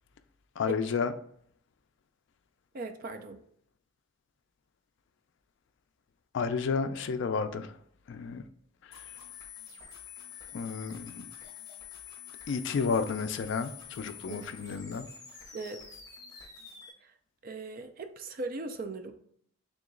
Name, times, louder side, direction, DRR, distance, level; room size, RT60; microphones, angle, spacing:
voice 1, 0.6-1.1 6.3-7.7 8.1-8.4 8.9-9.0 10.5-11.2 12.5-15.1, left 5 dB, 60° left, 0.3 m, -31 dB
voice 2, 2.7-3.4 14.3-14.5 15.5-15.8 17.0-17.1 17.4-19.1, right 3 dB, 45° right, 0.4 m, -39 dB
sound 1, 8.9-16.9, left 8 dB, 20° left, 0.9 m, -47 dB
3.6 x 3.0 x 3.7 m
head